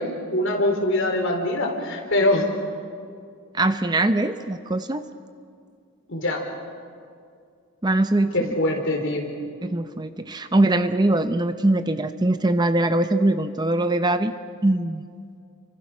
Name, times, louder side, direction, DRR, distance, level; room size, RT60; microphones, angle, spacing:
voice 1, 0.0-2.5 6.1-6.4 8.3-9.2, left 1 dB, 60° left, 2 dB, 4.1 m, -23 dB
voice 2, 3.5-5.0 7.8-8.5 9.6-14.3 14.6-15.0, right 2 dB, 20° right, 9 dB, 0.7 m, -22 dB
29.5 x 24.5 x 6.2 m, 2.3 s
head